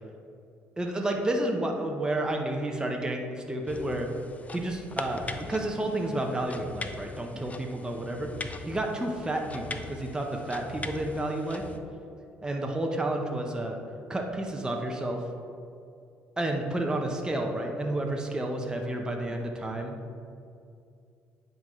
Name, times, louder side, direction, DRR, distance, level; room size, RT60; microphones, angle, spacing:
voice 1, 0.8-4.1 4.5-8.3 8.6-11.6 12.4-13.8 14.1-15.2 16.4-19.9, right 1 dB, 15° right, 1 dB, 0.8 m, -30 dB
sound 1, 3.7-11.8, left 3 dB, 25° left, 0.5 m, -41 dB
9.8 x 3.9 x 3.1 m, 2.5 s
supercardioid pair, 70°, 5 cm